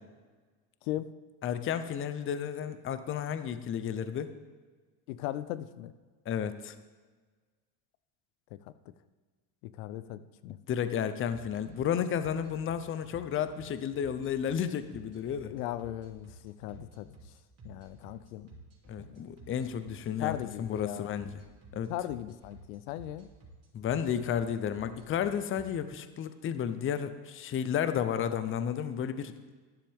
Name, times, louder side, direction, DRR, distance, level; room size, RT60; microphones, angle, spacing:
voice 1, 0.8-1.1 5.1-5.9 9.7-10.6 15.5-17.1 17.6-18.5 19.0-19.2 20.2-21.1 21.9-23.3, left 13 dB, 85° left, 14 dB, 0.6 m, -38 dB
voice 2, 1.4-4.3 6.3-6.7 10.7-15.5 18.9-21.4 21.7-21.9 23.7-29.3, left 8 dB, 30° left, 11 dB, 0.6 m, -32 dB
sound 1, 11.3-25.6, right 2 dB, 35° right, 2.8 m, -52 dB
12.0 x 10.5 x 3.6 m, 1.4 s
supercardioid pair, 120°, 43 cm